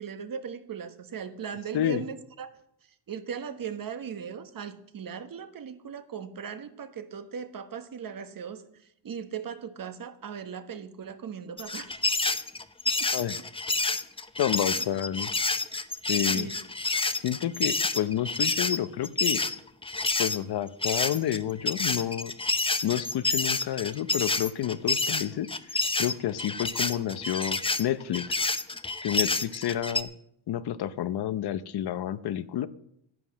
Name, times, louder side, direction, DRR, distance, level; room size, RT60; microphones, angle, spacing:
voice 1, 0.0-2.5 3.1-12.0 13.0-13.3 14.6-14.8 16.3-16.6, right 7 dB, 45° right, 10 dB, 1.3 m, -38 dB
sound 1, 11.6-20.4 20.8-30.0, left 3 dB, 10° left, 0.7 m, -28 dB
voice 2, 14.4-15.3 16.1-16.5 17.2-19.4 20.2-22.3 22.8-28.4 29.0-30.1 30.5-32.7, left 11 dB, 55° left, 15 dB, 0.8 m, -29 dB
11.0 x 9.7 x 7.4 m, 0.75 s
cardioid pair, 100°, 46 cm